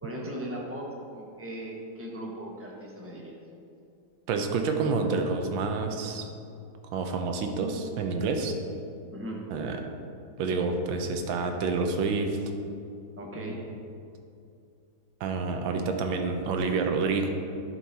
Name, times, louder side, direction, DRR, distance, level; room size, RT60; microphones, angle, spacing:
voice 1, 0.0-3.4 9.1-9.4 13.2-13.6, right 1 dB, 15° right, -2 dB, 0.5 m, -38 dB
voice 2, 4.3-6.3 6.9-8.5 9.5-9.8 10.4-12.4 13.4-13.5 15.2-17.3, right 4 dB, 80° right, 4 dB, 1.5 m, -28 dB
11.0 x 4.7 x 4.1 m, 2.5 s
omnidirectional pair, 2.2 m